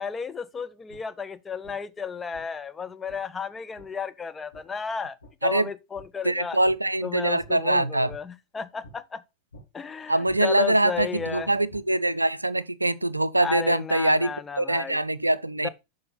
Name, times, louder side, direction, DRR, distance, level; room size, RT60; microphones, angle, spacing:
voice 1, 0.0-6.6 7.0-9.2 9.7-11.5 13.4-15.0 15.6-15.7, left 6 dB, 15° left, 0.5 m, -33 dB
sound 1, 0.9-1.0 1.6-1.7 2.3-2.4 3.1-3.2 3.8-3.9 4.5-4.6 5.2-5.3 5.9-6.1 6.6-6.8 7.4-7.5 8.1-8.2 8.8-8.9 9.5-9.6 10.3-10.4 10.9-11.8, left 1 dB, 75° left, 3.3 m, -48 dB
voice 2, 6.2-8.1 10.1-15.7, right 1 dB, 85° right, 0.4 m, -24 dB
6.8 x 5.3 x 3.8 m
figure-of-eight pair, 90°, 0 cm